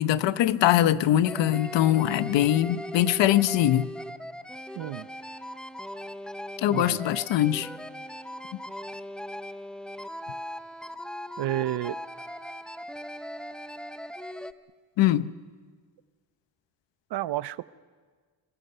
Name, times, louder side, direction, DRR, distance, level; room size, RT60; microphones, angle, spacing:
voice 1, 0.0-3.9 6.6-7.7 15.0-15.3, left 12 dB, 80° left, 1.0 m, -22 dB
sound 1, 1.2-14.5, equal, ahead, 0.7 m, -39 dB
voice 2, 4.8-5.1 6.7-7.0 11.4-12.0 17.1-17.6, right 15 dB, 65° right, 0.8 m, -30 dB
26.5 x 23.0 x 6.8 m
cardioid pair, 105°, 43 cm